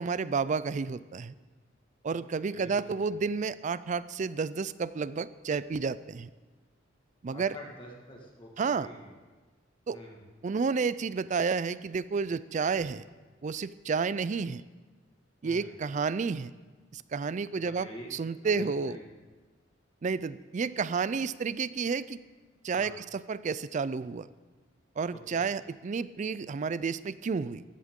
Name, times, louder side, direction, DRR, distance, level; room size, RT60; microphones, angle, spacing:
voice 1, 0.0-1.3 2.0-6.3 7.2-7.6 8.6-8.9 9.9-10.0 10.4-13.1 13.4-14.6 15.4-16.5 16.9-19.0 20.0-22.2 22.6-24.3 25.0-27.6, right 5 dB, 40° right, 16 dB, 0.4 m, -31 dB
voice 2, 2.5-3.2 7.3-9.1 9.9-10.2 15.4-15.7 17.6-18.1 18.4-19.0 22.7-22.9 25.1-25.5, equal, 25° left, -1 dB, 1.7 m, -47 dB
15.0 x 12.0 x 3.7 m, 1.3 s
head